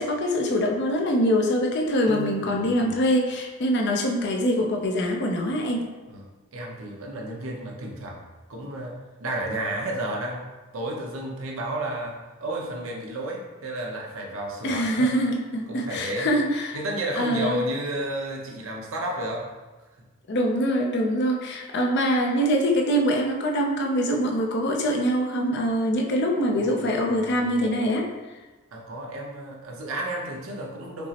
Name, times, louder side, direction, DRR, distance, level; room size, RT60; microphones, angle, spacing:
voice 1, 0.0-5.9 14.6-16.8 17.1-17.6 20.3-28.1, equal, 55° left, 1 dB, 0.5 m, -24 dB
Piano, 2.1-3.1, right 4 dB, 55° right, 0.4 m, -38 dB
voice 2, 2.4-3.0 6.1-6.2 6.5-10.5 10.7-15.1 15.7-16.3 16.7-19.5 26.5-27.5 28.7-31.1, right 1 dB, 80° right, -1 dB, 0.7 m, -32 dB
5.2 x 2.0 x 2.8 m, 1.2 s
head